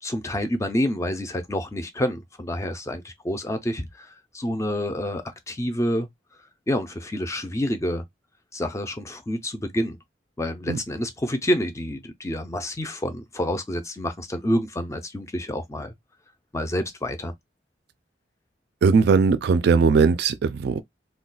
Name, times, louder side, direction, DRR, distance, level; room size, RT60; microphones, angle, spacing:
voice 1, 0.0-6.1 6.7-8.0 8.5-10.0 10.4-15.9 16.5-17.3, left 1 dB, 15° left, 0.4 m, -28 dB
voice 2, 18.8-20.8, right 5 dB, 65° right, 0.3 m, -19 dB
2.3 x 2.2 x 3.8 m
head